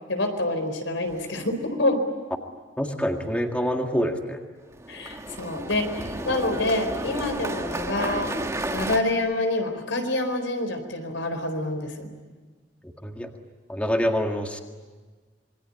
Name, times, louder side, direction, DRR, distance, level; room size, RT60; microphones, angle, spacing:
voice 1, 0.1-2.0 4.9-8.3 8.7-12.1, left 2 dB, 85° left, 6 dB, 4.4 m, -27 dB
sound 1, 1.0-1.5 4.7-9.0, right 1 dB, 15° right, 1.6 m, -32 dB
voice 2, 2.8-4.4 12.8-13.3 13.7-14.6, equal, 5° left, 3 dB, 1.8 m, -26 dB
27.0 x 22.0 x 9.9 m, 1.4 s
head